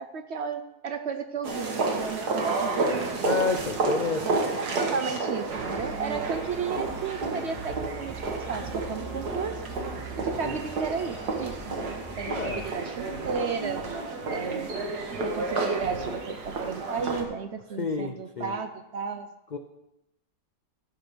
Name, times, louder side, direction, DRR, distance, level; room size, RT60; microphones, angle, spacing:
voice 1, 0.0-3.3 4.2-9.6 10.2-13.8 14.3-14.7 15.2-19.3, right 5 dB, 60° right, 9 dB, 0.7 m, -34 dB
sound 1, 1.4-17.2, right 3 dB, 80° right, 2.0 m, -31 dB
voice 2, 3.2-4.3 10.4-10.6 12.3-12.7 17.8-18.5 19.5-19.6, left 4 dB, 85° left, 6 dB, 0.4 m, -30 dB
sound 2, 5.6-12.7, right 4 dB, 15° right, 1.1 m, -43 dB
13.0 x 6.1 x 5.2 m, 0.90 s
omnidirectional pair, 1.7 m